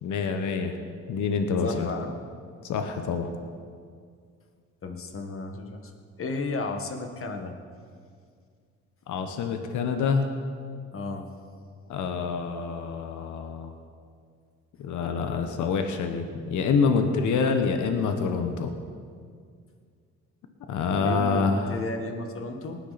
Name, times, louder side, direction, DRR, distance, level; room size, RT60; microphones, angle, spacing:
voice 1, 0.0-0.7 1.1-1.9 2.6-3.3 9.1-10.3 11.9-13.7 14.8-18.7 20.7-21.8, left 5 dB, 75° left, 6 dB, 1.1 m, -26 dB
voice 2, 1.6-2.1 4.8-5.8 6.2-7.5 10.9-11.3 20.9-22.8, left 3 dB, 45° left, 5 dB, 1.7 m, -33 dB
19.0 x 9.8 x 4.2 m, 2.1 s
cardioid pair, 90°, 30 cm